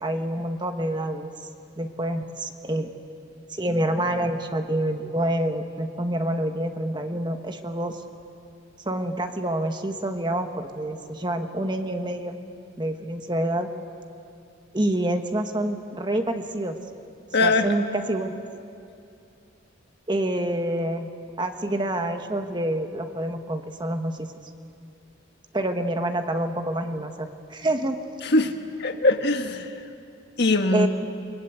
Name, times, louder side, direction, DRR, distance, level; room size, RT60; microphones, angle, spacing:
voice 1, 0.0-1.3 1.8-2.9 3.5-8.0 8.8-12.3 12.8-13.7 14.7-16.8 17.4-18.3 20.1-21.1 21.4-24.3 25.5-28.0 30.7-30.9, right 1 dB, 25° right, 6 dB, 1.3 m, -27 dB
voice 2, 17.3-17.7 28.2-29.7 30.4-30.9, left 2 dB, 55° left, 5 dB, 1.6 m, -21 dB
28.5 x 22.5 x 8.2 m, 2.5 s
head